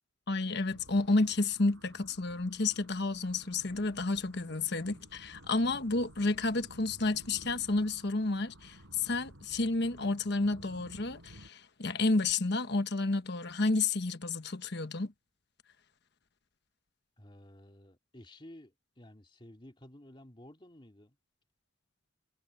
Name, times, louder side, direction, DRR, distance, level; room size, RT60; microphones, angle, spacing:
voice 1, 0.3-15.1, left 3 dB, 55° left, 1.2 m, -31 dB
sound 1, 0.7-11.5, right 1 dB, 90° right, 7.8 m, -54 dB
voice 2, 17.2-21.2, left 1 dB, 25° left, 2.8 m, -53 dB
head